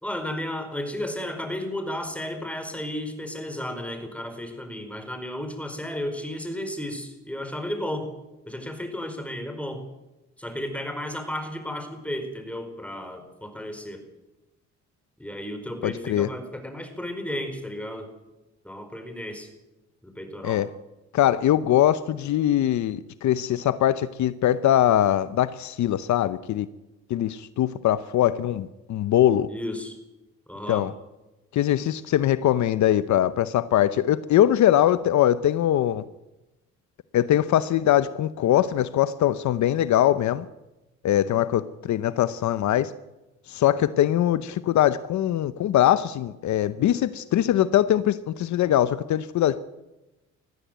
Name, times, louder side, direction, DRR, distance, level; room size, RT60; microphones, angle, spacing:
voice 1, 0.0-8.1 8.5-9.8 10.4-14.0 15.2-18.1 18.6-19.5 20.0-20.7 29.5-30.0 30.5-30.9, left 1 dB, 5° left, 7 dB, 4.7 m, -33 dB
voice 2, 15.8-16.3 20.4-20.7 21.1-26.7 27.1-29.5 30.7-30.9 31.5-36.0 37.1-40.5 41.0-42.9 43.5-49.6, left 12 dB, 70° left, 15 dB, 0.8 m, -22 dB
19.0 x 14.5 x 9.3 m, 1.0 s
cardioid pair, 90°, 30 cm